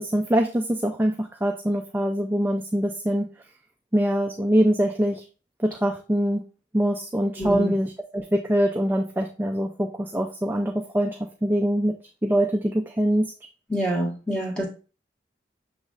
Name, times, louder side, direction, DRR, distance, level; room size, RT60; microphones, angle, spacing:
voice 1, 0.0-3.3 3.9-5.2 5.6-6.4 6.7-11.9 12.2-13.3, equal, 10° right, 2 dB, 0.3 m, -24 dB
voice 2, 7.4-7.7 13.7-14.7, right 1 dB, 5° left, -4 dB, 1.4 m, -26 dB
6.3 x 3.1 x 2.4 m, 0.36 s
head